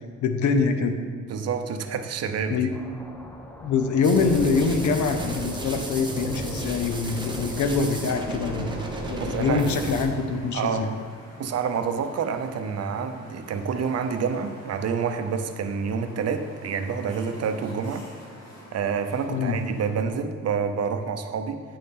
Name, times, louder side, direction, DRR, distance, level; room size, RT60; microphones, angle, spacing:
voice 1, 0.2-1.0 2.5-2.7 3.6-10.9 19.3-19.6, left 4 dB, 75° left, 7 dB, 0.8 m, -24 dB
voice 2, 1.3-2.7 9.1-9.7 10.5-10.9 11.4-18.1 18.7-21.6, right 6 dB, 55° right, 7 dB, 0.6 m, -28 dB
sound 1, 2.7-10.1, left 1 dB, 5° left, 0.4 m, -45 dB
sound 2, 4.0-10.1, right 2 dB, 15° right, 0.8 m, -33 dB
sound 3, 8.0-20.1, equal, 55° left, 1.7 m, -47 dB
9.5 x 6.8 x 3.7 m, 2.1 s
wide cardioid pair, 160°, 30 cm